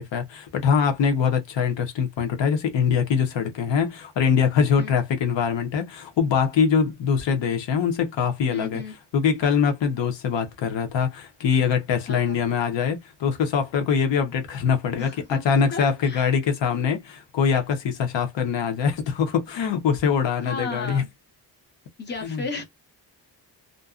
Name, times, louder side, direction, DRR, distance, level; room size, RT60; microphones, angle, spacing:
voice 1, 0.0-8.8 9.1-21.0 22.2-22.4, left 6 dB, 90° left, 0.9 m, -23 dB
voice 2, 8.5-8.9 12.1-12.4 15.0-15.4 15.7-16.3 20.4-21.1 22.0-22.6, left 3 dB, 25° left, 0.9 m, -34 dB
2.6 x 2.2 x 2.4 m
wide cardioid pair, 175°, 42 cm